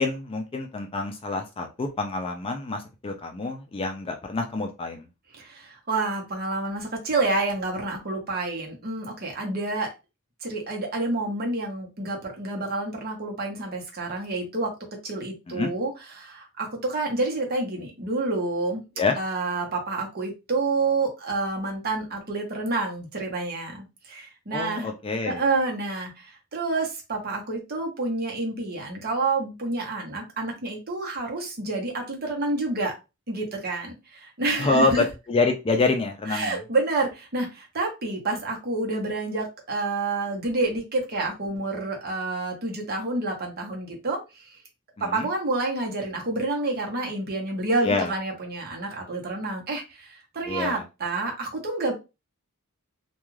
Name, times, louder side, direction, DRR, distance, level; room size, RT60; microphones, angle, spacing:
voice 1, 0.0-5.1 15.5-15.7 19.0-19.2 24.5-25.4 34.6-36.6 45.0-45.3 47.8-48.1 50.5-50.8, left 3 dB, 25° left, 4 dB, 0.3 m, -26 dB
voice 2, 5.4-9.9 10.4-14.7 15.0-18.8 19.2-24.9 25.2-32.9 33.3-35.0 36.3-44.2 45.0-51.9, right 2 dB, 45° right, 1 dB, 0.8 m, -28 dB
2.3 x 2.3 x 3.1 m, 0.27 s
head